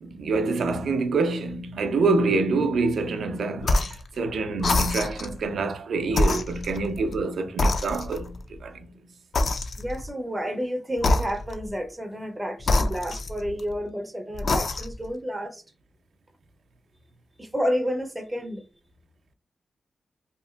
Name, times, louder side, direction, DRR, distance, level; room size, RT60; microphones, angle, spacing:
voice 1, 0.0-8.9, right 3 dB, 80° right, 0.4 m, -26 dB
sound 1, 3.6-4.1 4.6-5.4 6.1-7.2 7.6-8.4 9.3-10.1 11.0-11.7 12.6-13.7 14.3-15.1, left 2 dB, 60° left, 0.3 m, -25 dB
voice 2, 9.8-15.6 17.4-18.6, equal, 15° right, 0.4 m, -30 dB
2.8 x 2.5 x 2.3 m
cardioid pair, 85°, 0 cm